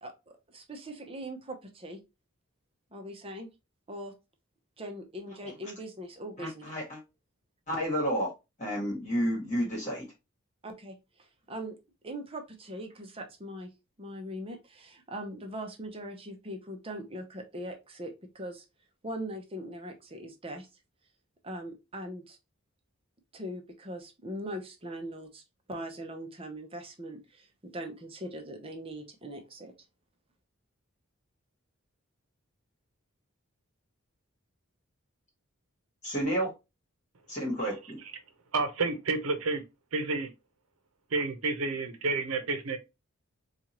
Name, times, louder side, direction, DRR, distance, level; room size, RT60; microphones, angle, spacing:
voice 1, 0.0-2.0 2.9-3.5 3.9-4.1 4.8-6.7 10.6-11.8 12.0-13.7 14.0-18.6 19.0-20.7 21.4-22.4 23.3-25.4 25.7-29.7, right 1 dB, 25° right, 0.7 m, -41 dB
voice 2, 6.4-7.0 7.7-8.3 8.6-10.1 36.0-36.5 37.3-38.0, equal, 35° left, 1.3 m, -30 dB
voice 3, 38.5-39.6 39.9-40.3 41.1-42.8, right 3 dB, 80° right, 0.8 m, -30 dB
4.4 x 2.4 x 2.9 m
head